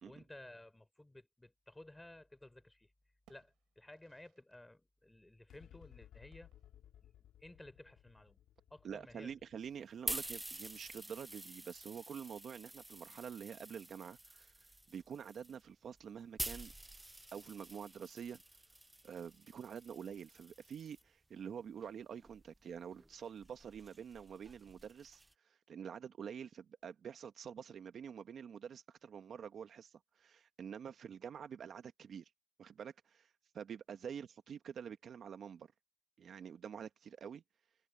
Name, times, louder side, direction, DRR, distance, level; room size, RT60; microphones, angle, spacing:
voice 1, 0.1-2.9 3.3-6.5 7.0-8.4 8.7-9.4, left 1 dB, 10° left, 4.1 m, -56 dB
sound 1, 2.3-2.7 3.0-4.6 4.9-5.0 6.3-6.9, right 13 dB, 90° right, 4.2 m, -73 dB
sound 2, 5.5-12.2, left 11 dB, 85° left, 2.6 m, -62 dB
voice 2, 8.8-14.5 14.9-16.7 17.3-18.4 19.0-32.3 32.6-35.7 36.2-37.4, right 7 dB, 55° right, 1.3 m, -47 dB
sound 3, 9.6-21.0 21.8-25.3, right 1 dB, 10° right, 0.4 m, -48 dB
cardioid pair, 105°, 0 cm